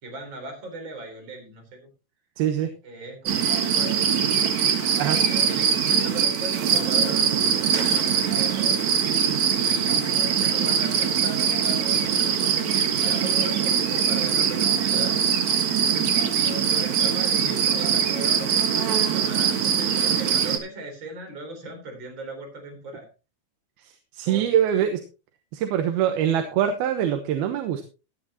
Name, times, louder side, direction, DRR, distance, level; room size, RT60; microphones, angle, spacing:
voice 1, 0.0-1.9 2.8-4.6 4.9-15.1 16.3-23.1 24.2-24.5, right 2 dB, 30° right, 3 dB, 4.4 m, -38 dB
voice 2, 2.4-2.7 5.0-5.2 24.1-25.0 25.5-27.8, right 10 dB, 90° right, 6 dB, 3.0 m, -23 dB
sound 1, 3.3-20.6, right 7 dB, 55° right, 2.6 m, -22 dB
17.0 x 9.8 x 2.9 m, 0.31 s
omnidirectional pair, 4.3 m